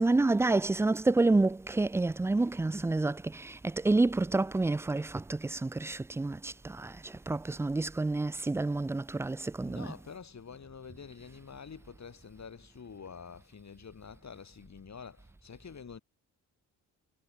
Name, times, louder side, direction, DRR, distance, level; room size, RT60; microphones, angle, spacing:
voice 1, 0.0-9.9, right 2 dB, 10° right, 0.3 m, -29 dB
voice 2, 9.6-16.0, left 6 dB, 50° left, 7.7 m, -47 dB
cardioid pair, 80°, 35 cm